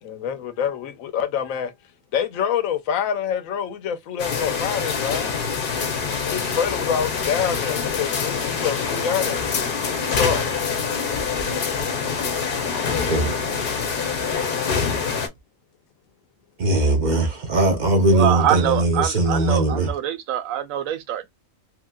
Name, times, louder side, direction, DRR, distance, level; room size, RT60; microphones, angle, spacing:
voice 1, 0.0-1.7 2.1-5.3 6.2-10.4, left 8 dB, 90° left, 1.0 m, -26 dB
sound 1, 4.2-15.3, left 5 dB, 50° left, 0.7 m, -25 dB
voice 2, 16.6-19.9, right 2 dB, 45° right, 0.7 m, -20 dB
voice 3, 18.1-21.3, right 11 dB, 85° right, 1.0 m, -24 dB
3.1 x 2.8 x 2.2 m
omnidirectional pair, 1.4 m